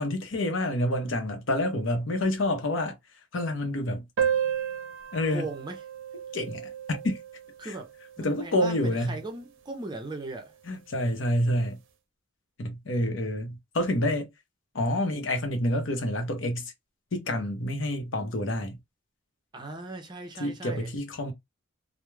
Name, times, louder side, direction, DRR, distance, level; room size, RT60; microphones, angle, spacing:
voice 1, 0.0-3.0 3.3-4.0 5.1-5.4 6.3-7.2 7.6-7.7 8.2-9.2 10.7-11.8 12.6-14.3 14.7-16.7 17.1-18.8 20.4-21.3, left 1 dB, 65° left, 0.7 m, -28 dB
sound 1, 4.2-9.1, right 8 dB, 65° right, 0.5 m, -33 dB
voice 2, 5.3-5.8 7.6-7.9 8.2-10.6 19.5-20.9, right 2 dB, 20° right, 0.5 m, -38 dB
2.3 x 2.0 x 3.1 m
head